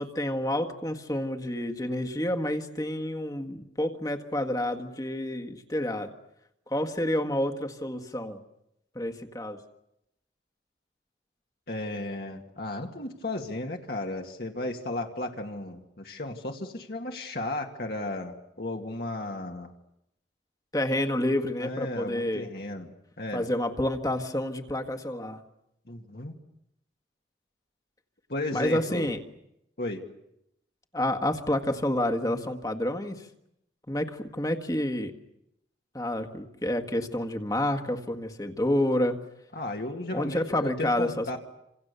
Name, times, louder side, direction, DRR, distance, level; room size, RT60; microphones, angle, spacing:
voice 1, 0.0-6.1 6.7-8.4 9.0-9.6 20.7-22.5 23.3-25.4 28.5-29.2 30.9-33.3 33.9-35.1 35.9-39.2 40.1-41.4, left 1 dB, 20° left, 5 dB, 1.7 m, -29 dB
voice 2, 11.7-19.7 21.6-22.9 23.2-23.5 25.9-26.3 28.3-29.1 29.8-30.0 39.5-41.4, left 2 dB, 60° left, 2 dB, 2.2 m, -34 dB
28.5 x 27.0 x 6.9 m, 0.81 s
head